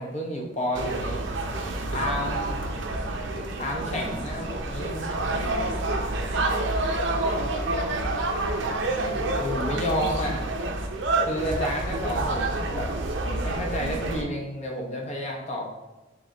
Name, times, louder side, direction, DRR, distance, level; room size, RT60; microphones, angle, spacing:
voice 1, 0.0-1.3 1.9-2.6 3.6-5.2 9.4-10.4 11.3-12.9 13.4-15.6, equal, 35° left, -1 dB, 0.8 m, -30 dB
sound 1, 0.7-14.2, right 2 dB, 65° right, 0.5 m, -28 dB
voice 2, 2.6-3.2 6.6-8.8, left 3 dB, 65° left, 3 dB, 0.3 m, -43 dB
3.6 x 3.2 x 3.9 m, 1.1 s
head